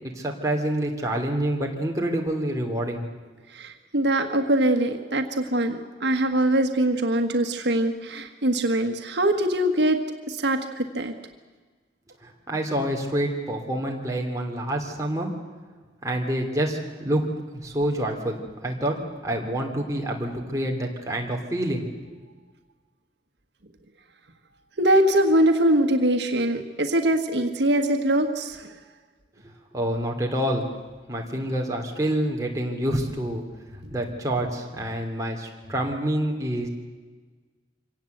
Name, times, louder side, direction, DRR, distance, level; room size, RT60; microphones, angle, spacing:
voice 1, 0.0-3.1 12.2-15.3 16.0-17.3 17.5-18.4 18.6-21.9 29.7-30.7 31.1-33.4 33.9-36.7, right 1 dB, 20° right, 0 dB, 2.9 m, -27 dB
voice 2, 3.5-10.0 10.3-11.1 24.8-28.7, right 1 dB, 75° right, 5 dB, 1.6 m, -22 dB
24.5 x 18.0 x 8.0 m, 1.4 s
head